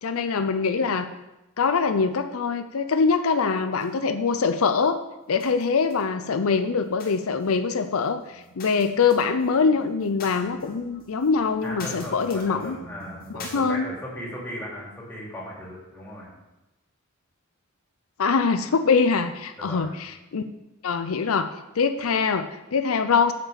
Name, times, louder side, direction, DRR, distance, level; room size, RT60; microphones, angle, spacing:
voice 1, 0.0-1.1 1.6-5.0 5.3-12.8 13.3-13.9 18.2-20.4 20.8-23.3, left 5 dB, 80° left, 9 dB, 0.5 m, -23 dB
sound 1, 3.8-4.5 4.8-6.0 6.3-13.6, left 2 dB, 45° left, 2.1 m, -45 dB
voice 2, 11.6-16.3 19.6-19.9, equal, 10° left, -6 dB, 3.5 m, -37 dB
7.9 x 6.6 x 6.9 m, 0.99 s
head